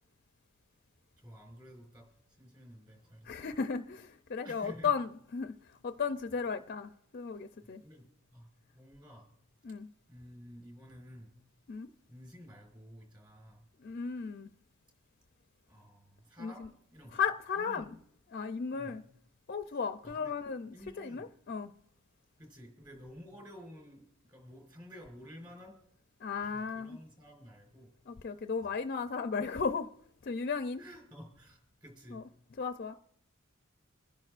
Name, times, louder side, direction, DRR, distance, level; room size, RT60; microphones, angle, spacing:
voice 1, 1.2-2.1 2.4-3.5 4.4-4.9 7.6-8.1 8.3-9.3 10.1-11.3 12.1-13.6 15.7-16.6 16.9-17.2 17.6-18.0 18.7-18.9 20.0-20.3 20.7-21.3 22.4-25.8 26.4-27.9 30.8-32.2, equal, 20° right, 4.3 m, -52 dB
voice 2, 3.2-5.5 5.8-7.8 9.6-9.9 11.7-11.9 13.8-14.5 16.4-16.7 17.1-18.0 18.3-19.0 19.5-21.7 26.2-27.0 28.1-29.9 30.2-30.8 32.1-32.2 32.6-32.9, left 5 dB, 45° left, 0.4 m, -35 dB
28.5 x 10.5 x 2.5 m
head